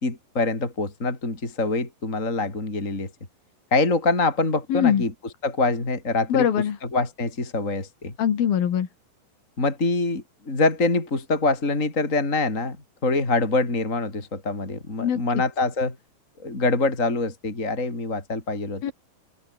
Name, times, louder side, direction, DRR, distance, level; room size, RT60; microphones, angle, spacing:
voice 1, 0.0-3.1 3.7-5.1 5.4-6.5 6.9-8.1 9.6-12.8 13.0-16.0 16.4-18.8, left 3 dB, 20° left, 4.6 m, -24 dB
voice 2, 4.7-5.0 6.3-6.8 8.2-8.9 15.0-15.2 18.8-18.9, left 9 dB, 90° left, 4.3 m, -22 dB
open air
omnidirectional pair, 4.1 m